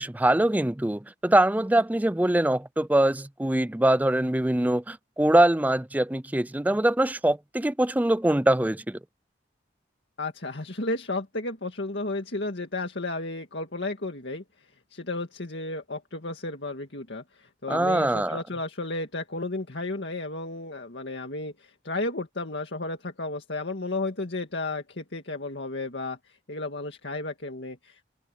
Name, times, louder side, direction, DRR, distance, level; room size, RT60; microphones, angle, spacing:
voice 1, 0.0-9.0 17.7-18.4, right 1 dB, 10° right, 0.4 m, -23 dB
voice 2, 10.2-28.0, left 2 dB, 75° left, 2.0 m, -33 dB
head